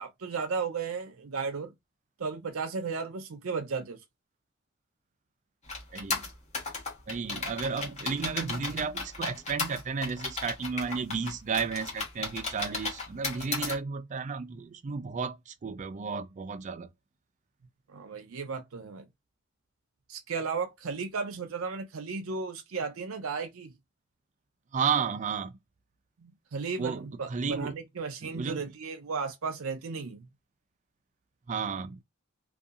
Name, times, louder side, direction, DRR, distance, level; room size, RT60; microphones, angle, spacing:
voice 1, 0.0-1.7 2.2-4.0 17.9-19.1 20.1-23.7 26.2-30.3, right 5 dB, 85° right, 0.6 m, -35 dB
sound 1, 5.7-13.8, left 3 dB, 35° left, 1.1 m, -35 dB
voice 2, 5.9-6.3 7.1-16.9 24.7-25.6 26.8-27.8 28.2-28.7 31.5-32.0, right 5 dB, 35° right, 0.4 m, -33 dB
2.7 x 2.3 x 2.4 m
head